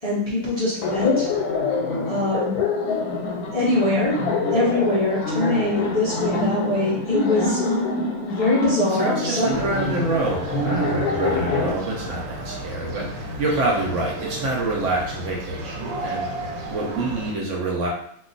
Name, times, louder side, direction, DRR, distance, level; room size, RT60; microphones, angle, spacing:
voice 1, 0.0-1.3 2.0-2.6 3.5-4.2 4.5-7.6 8.3-9.5, left 2 dB, 40° left, -8 dB, 0.5 m, -23 dB
Laughter, 0.8-11.7, left 3 dB, 85° left, 1.1 m, -25 dB
voice 2, 8.9-16.3 16.7-17.9, right 2 dB, 60° right, -2 dB, 0.9 m, -26 dB
sound 1, 9.5-17.3, right 1 dB, 85° right, 1.1 m, -33 dB
2.3 x 2.3 x 3.9 m, 0.67 s
omnidirectional pair, 1.6 m